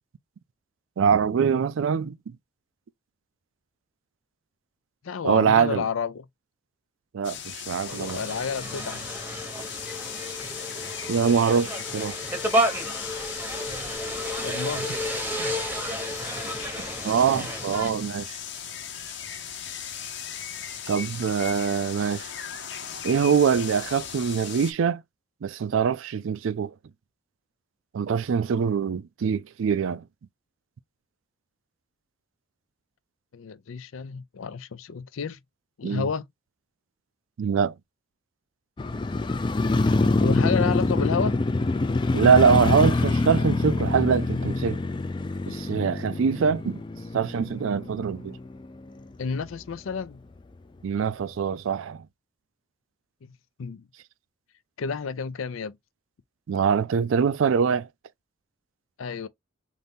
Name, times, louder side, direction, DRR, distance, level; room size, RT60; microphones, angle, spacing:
voice 1, 1.0-2.4 5.2-5.8 7.1-8.2 11.1-12.2 15.4-15.5 17.0-18.4 20.9-22.3 23.0-25.0 25.4-26.7 27.9-30.0 35.8-36.1 37.4-37.7 42.1-44.8 45.5-46.8 47.1-48.4 50.8-52.1 56.5-57.9, right 6 dB, 75° right, 0.4 m, -23 dB
voice 2, 5.0-6.2 7.8-9.1 14.4-15.0 33.3-35.4 35.8-36.2 40.2-41.4 49.2-50.2 53.2-53.3 53.6-53.8 54.8-55.8 59.0-59.3, left 5 dB, 80° left, 0.5 m, -30 dB
sound 1, 7.2-24.7, left 8 dB, 60° left, 0.8 m, -37 dB
sound 2, 7.9-17.9, equal, 10° right, 0.8 m, -31 dB
Motorcycle, 38.8-48.9 49.2-49.3, left 2 dB, 25° left, 0.3 m, -25 dB
4.0 x 2.6 x 3.5 m
head